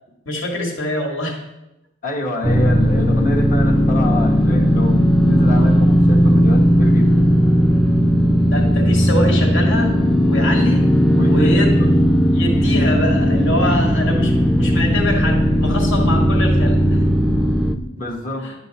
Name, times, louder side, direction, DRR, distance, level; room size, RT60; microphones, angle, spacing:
voice 1, 0.3-1.4 8.1-9.9 10.3-10.9 11.2-11.9 12.3-17.0 18.4-18.5, left 1 dB, 70° left, 1 dB, 1.9 m, -24 dB
voice 2, 2.0-7.3 11.2-11.9 18.0-18.5, left 1 dB, 40° left, 1 dB, 1.3 m, -27 dB
sound 1, 2.4-17.8, equal, ahead, 0.5 m, -16 dB
11.0 x 6.0 x 4.1 m, 0.93 s
head